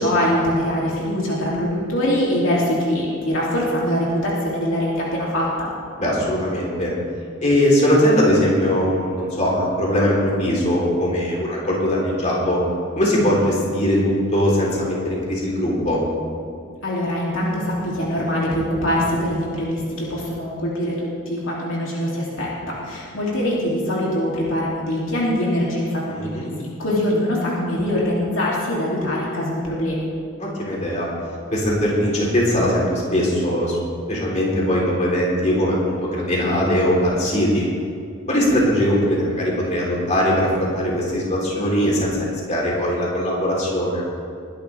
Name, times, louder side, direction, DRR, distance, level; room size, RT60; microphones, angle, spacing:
voice 1, 0.0-5.7 16.8-30.1, left 1 dB, 65° left, -5 dB, 3.0 m, -23 dB
voice 2, 6.0-6.9 7.4-12.6 13.0-16.0 26.1-26.5 30.4-31.1 31.5-33.8 34.1-37.7 38.3-42.1 42.5-44.0, equal, 35° left, -4 dB, 3.7 m, -20 dB
21.5 x 11.5 x 3.5 m, 2.4 s
head